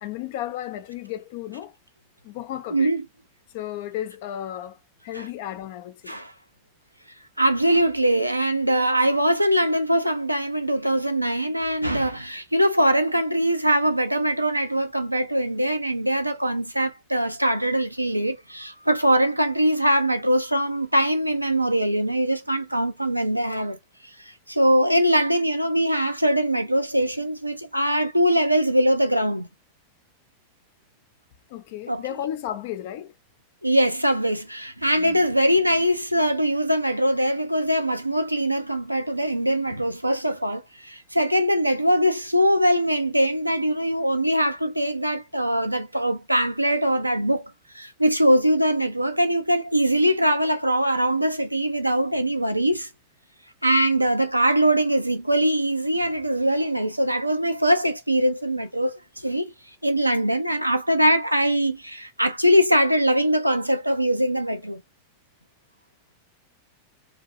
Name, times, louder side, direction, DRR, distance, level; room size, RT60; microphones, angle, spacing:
voice 1, 0.0-1.7 2.2-2.9 3.5-4.8 5.0-6.2 31.5-33.1 35.0-35.2, left 12 dB, 50° left, 0.5 m, -33 dB
voice 2, 2.7-3.0 5.1-5.3 6.1-6.3 7.4-23.8 24.2-29.5 31.9-32.0 33.6-52.9 53.6-59.5 59.8-64.8, equal, 90° right, 0.5 m, -22 dB
2.7 x 2.3 x 2.4 m
figure-of-eight pair, 90°, 0 cm